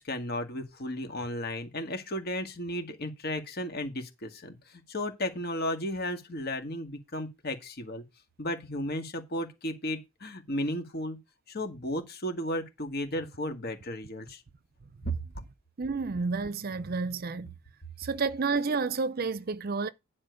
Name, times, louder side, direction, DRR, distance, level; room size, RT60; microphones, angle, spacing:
voice 1, 0.0-8.0 8.4-11.2 11.5-14.4 15.1-15.2, left 1 dB, 50° left, 2.0 m, -34 dB
voice 2, 15.8-17.5 18.0-19.9, right 4 dB, 45° right, 0.6 m, -30 dB
10.0 x 4.3 x 6.4 m
head